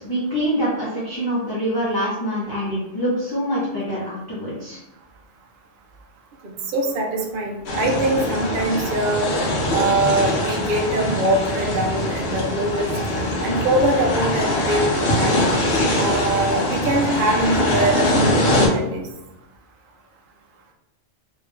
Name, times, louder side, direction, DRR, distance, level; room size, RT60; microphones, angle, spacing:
voice 1, 0.0-4.8, equal, 25° left, -8 dB, 0.7 m, -25 dB
voice 2, 6.4-9.3 9.7-15.3 16.0-19.1, right 1 dB, 55° right, 1 dB, 0.7 m, -23 dB
sound 1, 7.7-18.7, left 1 dB, 60° left, 1.0 m, -22 dB
3.2 x 2.7 x 3.3 m, 0.95 s
omnidirectional pair, 1.3 m